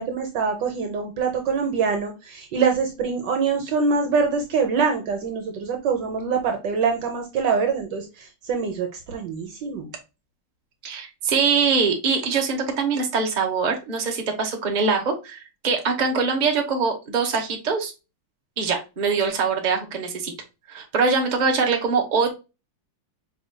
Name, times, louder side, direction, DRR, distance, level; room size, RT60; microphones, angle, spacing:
voice 1, 0.0-9.9, right 5 dB, 70° right, 5 dB, 1.4 m, -24 dB
voice 2, 10.8-17.9 18.6-20.3 20.7-22.3, right 5 dB, 30° right, 2 dB, 0.9 m, -23 dB
5.2 x 3.5 x 2.2 m, 0.28 s
omnidirectional pair, 2.0 m